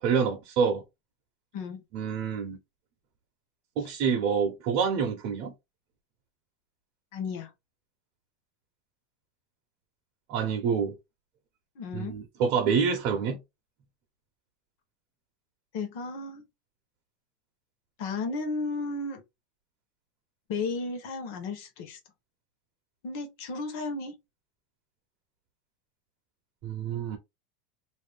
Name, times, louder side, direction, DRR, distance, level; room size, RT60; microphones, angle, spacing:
voice 1, 0.0-0.8 1.9-2.6 3.8-5.5 10.3-10.9 11.9-13.4 26.6-27.2, right 6 dB, 40° right, 0.7 m, -27 dB
voice 2, 7.1-7.5 11.8-12.2 15.7-16.4 18.0-19.2 20.5-22.0 23.0-24.1, left 3 dB, 50° left, 0.9 m, -34 dB
2.6 x 2.3 x 3.3 m
supercardioid pair, 170°, 0 cm